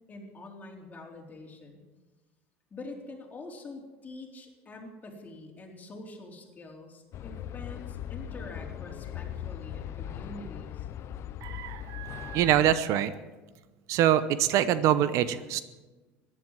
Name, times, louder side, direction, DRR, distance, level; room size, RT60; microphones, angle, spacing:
voice 1, 0.1-1.8 2.7-10.9, left 2 dB, 25° left, 0 dB, 3.9 m, -45 dB
sound 1, 7.1-12.7, left 10 dB, 50° left, 0.7 m, -39 dB
voice 2, 11.4-13.1 13.9-15.6, right 11 dB, 60° right, 14 dB, 0.8 m, -25 dB
14.5 x 11.0 x 7.5 m, 1.2 s
supercardioid pair, 85°, 6 cm